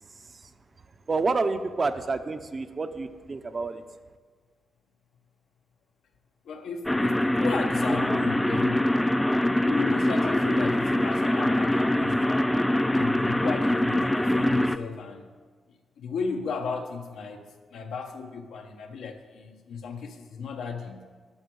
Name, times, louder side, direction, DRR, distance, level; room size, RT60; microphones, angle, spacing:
voice 1, 0.1-0.5 1.1-3.8, right 3 dB, 35° right, 10 dB, 0.6 m, -29 dB
voice 2, 6.4-8.9 9.4-12.4 12.9-15.3 16.0-17.5 17.7-21.1, left 5 dB, 85° left, 3 dB, 1.1 m, -35 dB
sound 1, 6.9-14.8, left 1 dB, 10° left, 0.4 m, -24 dB
11.5 x 6.1 x 6.2 m, 1.5 s
cardioid pair, 105°, 0 cm